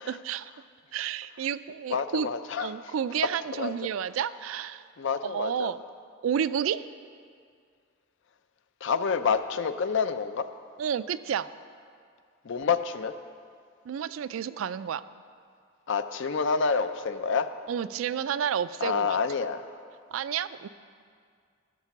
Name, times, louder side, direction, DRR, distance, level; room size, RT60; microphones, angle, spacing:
voice 1, 0.1-0.5 0.9-2.3 2.6-4.8 5.2-5.8 6.2-6.8 10.8-11.5 13.9-15.0 17.7-19.2 20.1-20.7, right 8 dB, 80° right, 15 dB, 0.3 m, -30 dB
voice 2, 1.9-2.9 3.5-3.7 5.0-5.7 8.8-10.5 12.4-13.1 15.9-17.5 18.8-19.6, left 5 dB, 65° left, 11 dB, 0.5 m, -28 dB
11.5 x 6.7 x 5.9 m, 2.2 s
head